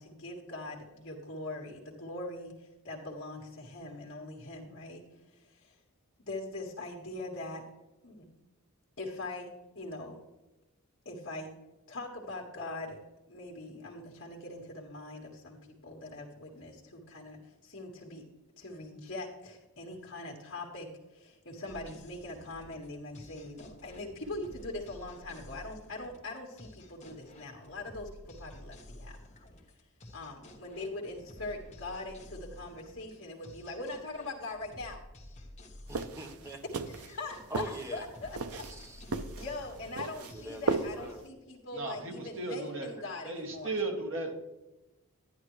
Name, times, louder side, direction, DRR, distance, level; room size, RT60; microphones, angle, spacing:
voice 1, 0.0-5.0 5.3-5.8 6.2-7.6 8.0-8.3 9.0-9.5 9.7-10.2 11.0-11.5 11.9-13.0 13.3-15.6 15.8-18.2 18.6-29.2 30.1-35.0 36.9-38.6 39.1-43.7, left 2 dB, 55° left, -2 dB, 1.6 m, -42 dB
sound 1, 21.7-41.1, left 1 dB, 30° left, 1.3 m, -52 dB
voice 2, 35.9-36.8 37.5-38.1 38.5-39.0 40.1-41.2, right 1 dB, 15° right, 3 dB, 1.0 m, -44 dB
sound 2, 35.9-41.3, right 4 dB, 80° right, 0.7 m, -36 dB
voice 3, 41.7-43.0 43.2-44.3, right 2 dB, 60° right, 1 dB, 2.0 m, -35 dB
11.5 x 10.5 x 3.2 m, 1.0 s
head